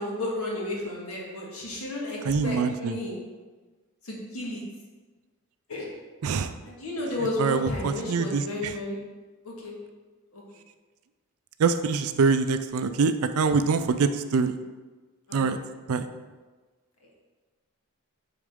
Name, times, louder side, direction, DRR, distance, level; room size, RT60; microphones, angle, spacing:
voice 1, 0.0-3.1 4.0-4.6 5.7-5.9 6.6-9.0 9.4-9.7 10.3-10.4 15.3-15.4, left 1 dB, 75° left, -3 dB, 1.7 m, -32 dB
voice 2, 2.3-3.0 6.2-6.5 7.4-8.7 11.6-14.6 15.3-15.6 15.9-16.1, right 5 dB, 75° right, 10 dB, 0.4 m, -24 dB
8.3 x 3.9 x 3.6 m, 1.3 s
head